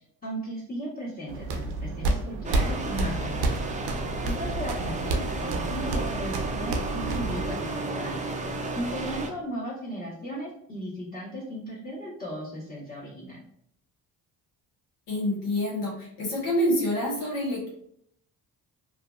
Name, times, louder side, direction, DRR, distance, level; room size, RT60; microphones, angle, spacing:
voice 1, 0.2-3.6 4.2-8.3 8.7-13.4, equal, 20° left, -6 dB, 1.2 m, -36 dB
sound 1, 1.3-7.5, right 2 dB, 65° right, 0.6 m, -30 dB
sound 2, 2.4-9.3, right 2 dB, 20° right, 0.4 m, -33 dB
voice 2, 15.1-17.7, equal, 75° left, -4 dB, 1.2 m, -27 dB
2.5 x 2.2 x 2.4 m, 0.70 s
hypercardioid pair, 55°, 43 cm